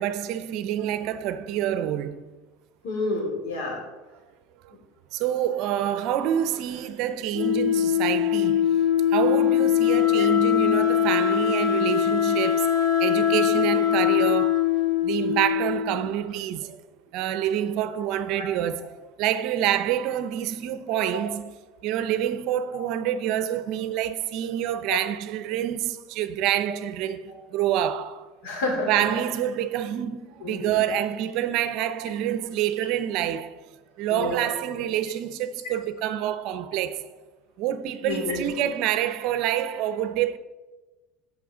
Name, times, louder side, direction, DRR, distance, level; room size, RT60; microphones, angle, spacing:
voice 1, 0.0-2.2 5.1-8.8 9.1-14.7 15.0-16.8 17.1-21.5 21.8-28.3 28.9-33.6 34.0-37.0 37.6-40.4, right 11 dB, 55° right, 0.6 m, -27 dB
voice 2, 2.8-3.8 10.1-10.3 18.3-18.5 22.7-22.8 24.9-25.0 27.3-27.4 28.4-29.2 30.4-30.8 34.1-34.4 38.0-38.5, left 2 dB, 80° left, 3.2 m, -30 dB
Wind instrument woodwind instrument, 7.3-16.1, left 10 dB, 55° left, 1.9 m, -22 dB
14.0 x 5.7 x 3.8 m
supercardioid pair, 145°, 0 cm